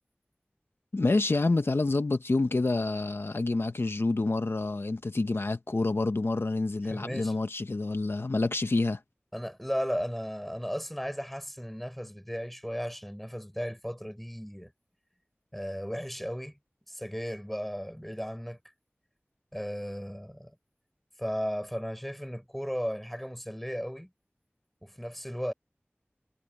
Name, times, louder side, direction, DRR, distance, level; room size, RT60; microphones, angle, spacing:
voice 1, 0.9-9.0, left 2 dB, 65° left, 0.7 m, -28 dB
voice 2, 6.8-7.4 9.3-14.7 15.5-16.6 16.9-18.6 19.5-20.6 21.2-24.1 24.8-25.5, equal, 5° left, 3.9 m, -35 dB
wide cardioid pair, 50°, 4 cm